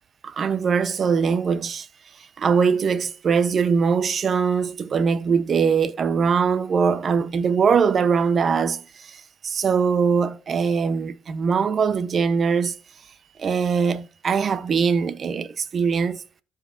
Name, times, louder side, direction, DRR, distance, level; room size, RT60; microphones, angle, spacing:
voice 1, 0.2-1.9 2.4-8.8 9.1-9.2 9.4-12.7 13.4-16.2, right 6 dB, 50° right, 0.8 m, -21 dB
14.0 x 5.1 x 2.6 m
cardioid pair, 90°, 0 cm